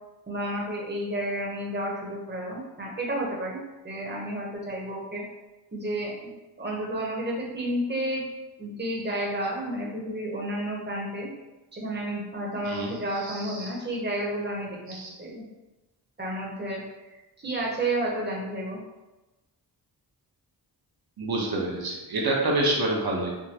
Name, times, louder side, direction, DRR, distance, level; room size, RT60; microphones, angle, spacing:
voice 1, 0.3-5.2 5.7-6.1 6.6-8.2 8.6-11.3 11.7-15.4 16.2-16.8 17.4-18.8, right 1 dB, 25° right, -2 dB, 0.9 m, -31 dB
voice 2, 13.3-13.7 14.9-15.1 21.2-23.4, right 2 dB, 60° right, -2 dB, 0.9 m, -27 dB
3.6 x 2.2 x 2.8 m, 1.1 s
cardioid pair, 55°, 40 cm